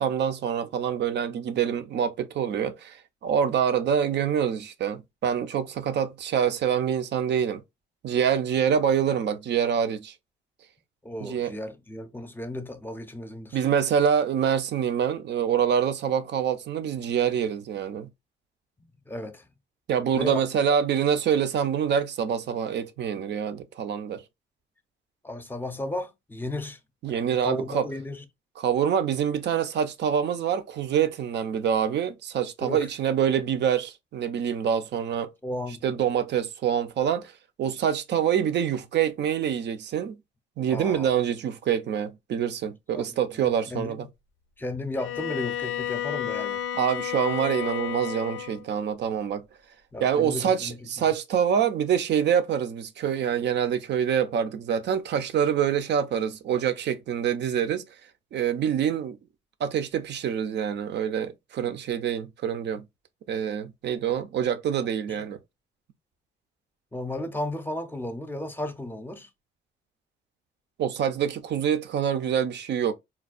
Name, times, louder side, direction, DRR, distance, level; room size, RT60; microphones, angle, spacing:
voice 1, 0.0-7.6 8.0-10.1 11.2-11.5 13.5-18.1 19.9-24.2 27.0-27.9 28.6-35.3 35.8-37.3 37.6-40.2 40.6-44.1 46.7-49.4 50.0-57.9 58.3-59.2 59.6-62.9 63.3-65.4 70.8-72.9, right 8 dB, 60° right, 0.5 m, -26 dB
voice 2, 11.0-13.6 19.1-19.5 20.1-20.4 25.2-26.8 27.1-28.2 32.6-32.9 35.4-35.8 40.7-41.1 42.9-43.1 43.4-44.1 44.6-46.7 49.9-50.8 65.1-65.2 66.9-69.3, left 1 dB, 10° left, 0.6 m, -34 dB
Bowed string instrument, 44.9-48.7, left 10 dB, 80° left, 0.4 m, -31 dB
4.3 x 2.2 x 2.4 m
cardioid pair, 90°, 20 cm